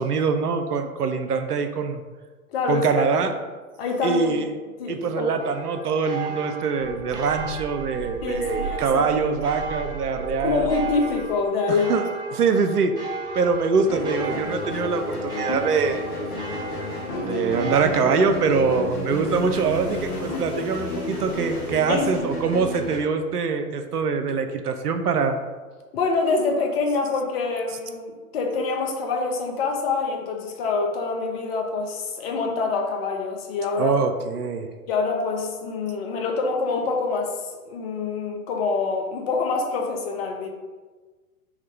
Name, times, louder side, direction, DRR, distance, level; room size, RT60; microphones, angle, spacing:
voice 1, 0.0-2.0 2.7-3.3 4.0-4.5 4.9-10.7 11.7-12.0 12.3-12.9 13.3-16.1 17.1-25.4 33.8-34.7, right 5 dB, 85° right, 7 dB, 0.5 m, -24 dB
voice 2, 2.5-3.3 3.8-4.4 4.8-5.4 8.2-9.1 10.4-12.0 21.9-22.1 25.9-34.0 34.9-40.5, left 4 dB, 40° left, 2 dB, 0.7 m, -26 dB
sound 1, 5.4-18.3, right 4 dB, 10° right, 0.5 m, -35 dB
sound 2, 6.8-11.4 12.9-22.8, right 3 dB, 30° right, 1.2 m, -40 dB
sound 3, 13.8-23.0, left 2 dB, 80° left, 0.9 m, -31 dB
3.5 x 2.2 x 4.3 m, 1.3 s
figure-of-eight pair, 105°, 45 cm